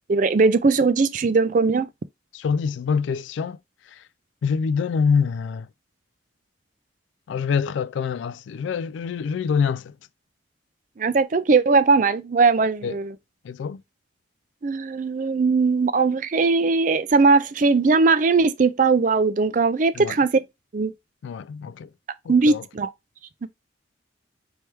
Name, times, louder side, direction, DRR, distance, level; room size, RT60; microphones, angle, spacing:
voice 1, 0.1-1.9 11.0-13.1 14.6-20.4 20.7-20.9 22.3-22.9, right 4 dB, 40° right, 0.4 m, -19 dB
voice 2, 2.3-3.6 4.4-5.7 7.3-9.9 12.8-13.0 13.4-13.8 20.0-20.1 21.2-21.9 22.5-22.6, left 6 dB, 75° left, 0.3 m, -25 dB
4.5 x 3.3 x 3.2 m
head